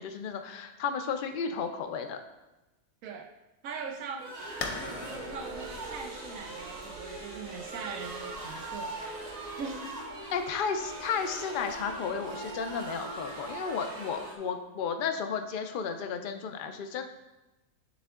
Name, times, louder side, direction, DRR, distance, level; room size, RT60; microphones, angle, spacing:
voice 1, 0.0-2.2 10.3-17.0, left 6 dB, 55° left, 7 dB, 0.6 m, -33 dB
voice 2, 3.6-4.3 4.8-9.0 9.6-10.0, right 5 dB, 80° right, 4 dB, 1.0 m, -41 dB
sound 1, 4.2-14.4, right 2 dB, 35° right, 0.9 m, -41 dB
sound 2, 4.6-10.1, left 4 dB, 75° left, 1.1 m, -43 dB
sound 3, 5.0-13.5, equal, 65° right, 2.0 m, -49 dB
9.5 x 3.5 x 3.6 m, 1.1 s
omnidirectional pair, 1.4 m